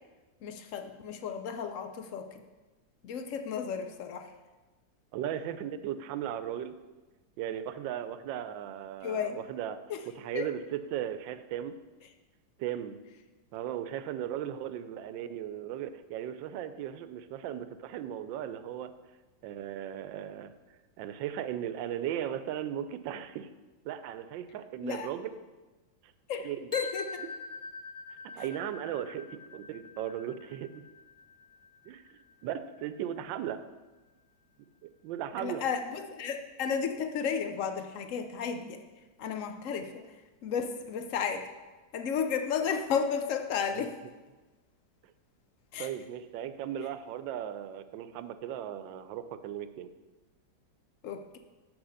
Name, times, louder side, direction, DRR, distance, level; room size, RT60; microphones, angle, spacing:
voice 1, 0.4-2.4 3.0-4.3 9.0-9.4 9.9-10.0 10.3-10.5 24.8-25.1 26.3-27.2 28.3-28.4 35.4-38.8 39.2-40.2 40.4-41.5 41.9-44.0 45.7-45.9 51.0-51.4, left 6 dB, 75° left, 7 dB, 0.7 m, -33 dB
voice 2, 5.1-6.8 7.4-9.8 10.2-11.7 12.6-13.0 13.5-18.9 19.4-20.5 21.0-23.5 23.8-25.3 26.4-26.6 28.4-30.8 31.9-33.6 34.8-35.6 45.8-49.9, right 10 dB, 80° right, 11 dB, 1.3 m, -37 dB
sound 1, 26.7-32.6, left 3 dB, 35° left, 0.7 m, -44 dB
6.8 x 6.1 x 6.4 m, 1.2 s
omnidirectional pair, 2.1 m